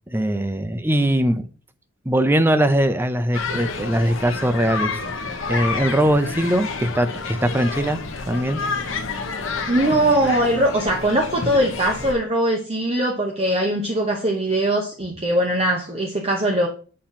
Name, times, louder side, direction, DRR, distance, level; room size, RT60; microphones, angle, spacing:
voice 1, 0.1-1.4 2.1-4.9 5.5-8.0 8.3-8.6, right 1 dB, 10° right, 9 dB, 0.5 m, -21 dB
sound 1, 3.3-12.1, left 4 dB, 65° left, 1.0 m, -29 dB
voice 2, 9.7-16.7, right 1 dB, 30° right, 0 dB, 0.9 m, -21 dB
8.6 x 3.0 x 5.7 m, 0.39 s
head